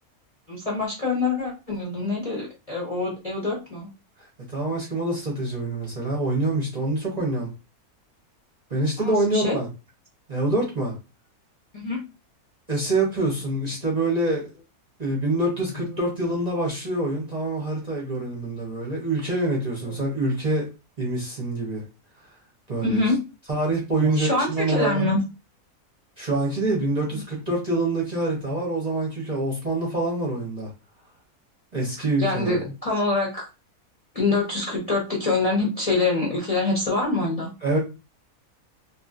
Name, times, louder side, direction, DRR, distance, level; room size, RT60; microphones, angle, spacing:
voice 1, 0.5-3.9 9.0-9.6 11.7-12.0 19.8-19.9 22.8-23.2 24.0-25.2 27.1-27.2 32.2-33.5 34.1-37.5, left 3 dB, 35° left, -3 dB, 0.7 m, -25 dB
voice 2, 4.5-7.5 8.7-9.7 10.3-10.9 12.7-14.5 15.0-20.7 21.0-21.8 22.7-23.0 23.5-25.0 26.2-30.7 31.7-32.6 37.6-37.8, right 2 dB, 35° right, -3 dB, 0.8 m, -25 dB
3.0 x 2.5 x 2.4 m, 0.29 s
omnidirectional pair, 1.6 m